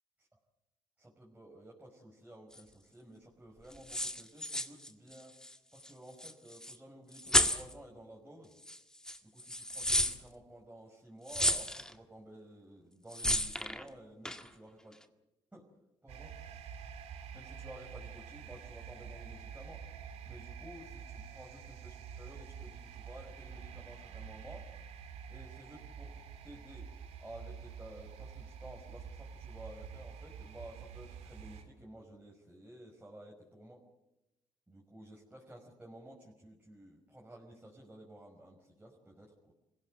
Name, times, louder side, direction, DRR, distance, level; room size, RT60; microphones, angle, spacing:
voice 1, 1.0-5.3 5.7-8.6 9.2-15.0 15.5-15.6 16.0-16.3 17.3-19.8 20.3-24.7 25.3-26.8 27.2-33.8 34.7-39.5, right 1 dB, 10° right, -2 dB, 5.5 m, -53 dB
sound 1, 2.5-2.6 3.7-5.6 5.8-5.9 6.2-6.8 7.1-7.7 8.6-8.8 9.0-10.2 11.3-11.9 13.1-13.8 14.2-14.5, left 1 dB, 5° left, 1.9 m, -32 dB
sound 2, 16.1-31.6, right 7 dB, 85° right, 3.0 m, -48 dB
26.0 x 16.5 x 8.1 m, 0.91 s
cardioid pair, 90°, 11 cm